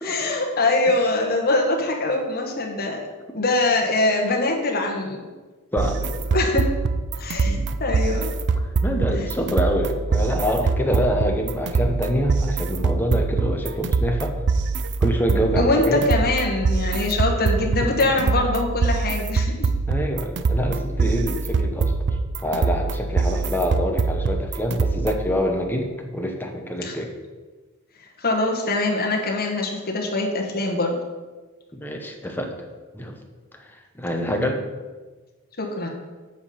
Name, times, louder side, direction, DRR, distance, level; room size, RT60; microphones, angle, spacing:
voice 1, 0.0-3.0 3.3-5.3 6.3-6.7 7.2-8.3 15.6-19.7 26.8-26.9 28.2-30.9 35.6-35.9, left 2 dB, 45° left, 1 dB, 1.2 m, -23 dB
sound 1, 5.8-25.3, right 4 dB, 55° right, 0.4 m, -24 dB
voice 2, 7.4-7.8 8.8-14.4 15.0-16.0 17.8-18.1 19.9-21.9 22.4-27.1 31.7-32.5 32.9-33.2 33.7-34.6, equal, 10° left, 2 dB, 0.8 m, -26 dB
8.1 x 5.0 x 5.5 m, 1.3 s
head